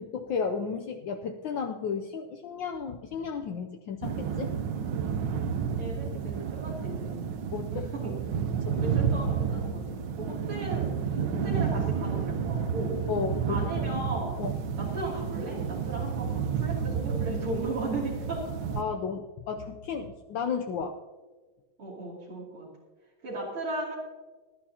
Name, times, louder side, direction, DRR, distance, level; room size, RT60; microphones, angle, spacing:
voice 1, 0.0-4.5 7.5-7.9 8.6-8.8 13.1-13.7 14.4-14.5 18.8-21.0, left 6 dB, 70° left, 4 dB, 1.3 m, -33 dB
sound 1, 4.0-18.8, right 7 dB, 65° right, 1.4 m, -31 dB
voice 2, 5.8-7.2 7.7-8.1 8.7-13.0 13.5-14.4 14.8-18.4 21.8-22.7 23.2-24.0, right 2 dB, 85° right, -6 dB, 3.7 m, -36 dB
20.0 x 11.5 x 2.8 m, 1.3 s
omnidirectional pair, 2.3 m